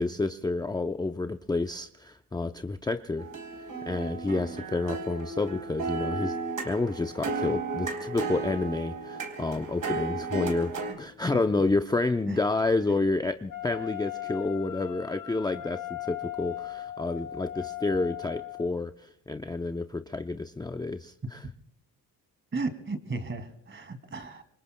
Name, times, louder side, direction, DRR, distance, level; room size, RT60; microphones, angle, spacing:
voice 1, 0.0-3.3 3.9-6.4 6.6-21.4, left 3 dB, 10° left, 8 dB, 0.5 m, -29 dB
sound 1, 3.2-10.9, right 3 dB, 50° right, 3.6 m, -34 dB
Wind instrument woodwind instrument, 13.5-18.7, left 13 dB, 60° left, 1.7 m, -38 dB
voice 2, 22.5-24.4, right 3 dB, 30° right, 9 dB, 2.5 m, -35 dB
27.0 x 23.5 x 2.2 m, 0.67 s
cardioid pair, 90°, 40 cm